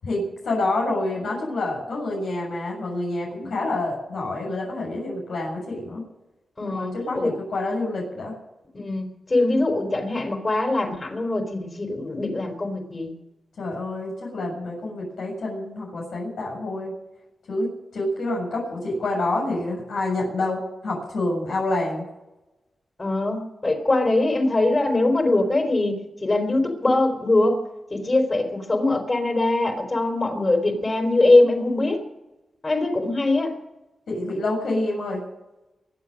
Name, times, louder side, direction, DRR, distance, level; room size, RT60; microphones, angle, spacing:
voice 1, 0.0-6.0 6.6-8.3 13.6-16.9 17.5-17.7 17.9-22.0 34.1-35.2, left 2 dB, 85° left, -3 dB, 7.3 m, -27 dB
voice 2, 6.6-7.4 8.7-13.1 23.0-27.6 27.9-32.0 32.6-33.5, left 2 dB, 35° left, 3 dB, 4.4 m, -22 dB
23.5 x 8.4 x 6.6 m, 0.99 s
cardioid pair, 70°, 0 cm